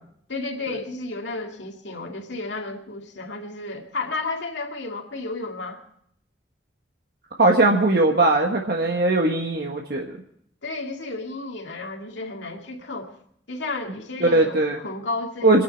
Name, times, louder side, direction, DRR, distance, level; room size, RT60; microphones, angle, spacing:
voice 1, 0.3-5.8 10.6-13.1 13.5-15.6, left 3 dB, 75° left, 1 dB, 2.3 m, -32 dB
voice 2, 7.4-10.1 14.2-14.8 15.4-15.6, right 2 dB, 55° right, 1 dB, 1.4 m, -19 dB
27.0 x 10.5 x 4.5 m, 0.70 s
head